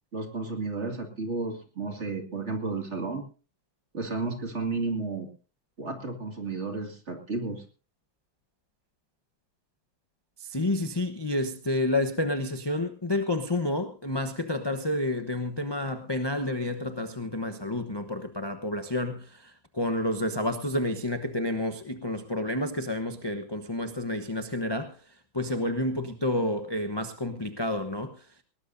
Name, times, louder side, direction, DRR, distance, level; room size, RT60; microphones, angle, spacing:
voice 1, 0.1-3.2 3.9-5.3 5.8-7.6, right 3 dB, 35° right, 4 dB, 2.5 m, -32 dB
voice 2, 10.4-25.0 25.3-28.3, left 1 dB, 20° left, 7 dB, 0.7 m, -30 dB
20.0 x 19.0 x 2.6 m, 0.35 s
omnidirectional pair, 2.1 m